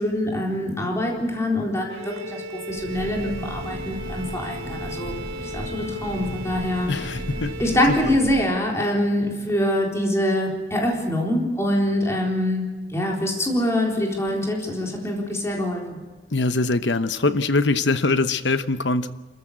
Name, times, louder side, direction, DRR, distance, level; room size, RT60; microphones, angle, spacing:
voice 1, 0.0-2.4 2.7-6.9 7.6-12.6 12.9-16.0, left 1 dB, 15° left, -1 dB, 3.9 m, -24 dB
Bowed string instrument, 1.9-8.3, right 1 dB, 85° right, 1.9 m, -36 dB
Train, 2.7-8.4, equal, 55° right, 4.6 m, -35 dB
voice 2, 6.9-7.5 7.9-8.0 16.3-19.1, left 3 dB, 85° left, 12 dB, 1.0 m, -22 dB
27.0 x 14.0 x 8.2 m, 1.3 s
head